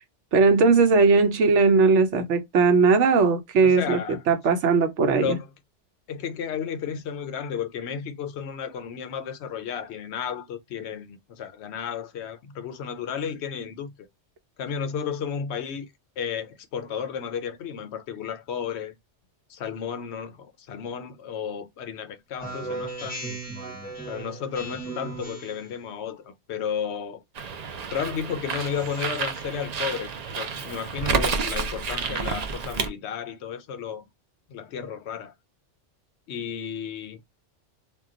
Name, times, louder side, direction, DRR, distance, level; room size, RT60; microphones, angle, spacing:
voice 1, 0.3-4.0 4.3-5.4, right 4 dB, 80° right, 1.0 m, -19 dB
voice 2, 3.6-4.2 5.1-5.5 6.1-13.9 14.6-15.9 16.2-19.0 19.5-23.4 24.1-27.2 27.9-34.0 34.5-35.3 36.3-37.2, left 7 dB, 70° left, 0.8 m, -33 dB
Speech synthesizer, 22.4-25.7, right 2 dB, 10° left, 0.7 m, -36 dB
Bird, 27.3-32.9, right 5 dB, 60° right, 0.4 m, -30 dB
2.3 x 2.2 x 3.7 m
omnidirectional pair, 1.2 m